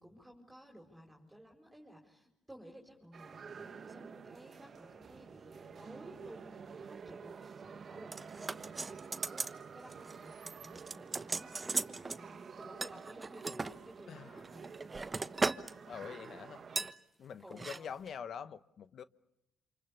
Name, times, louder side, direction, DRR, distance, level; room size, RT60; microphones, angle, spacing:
voice 1, 0.0-15.3 16.0-16.4 17.4-17.9, equal, 10° right, 4.7 m, -55 dB
sound 1, 3.1-16.9, right 6 dB, 50° right, 1.3 m, -50 dB
sound 2, 8.1-9.6 9.9-10.2 10.5-12.2 12.8-13.7 14.4-15.7 16.0-16.2 16.8-16.9 17.5-17.8 18.1-18.2, right 3 dB, 30° right, 1.1 m, -37 dB
voice 2, 14.1-14.4 15.8-16.9 17.2-19.0, left 7 dB, 60° left, 1.0 m, -46 dB
28.5 x 27.5 x 7.1 m
cardioid pair, 80°, 0 cm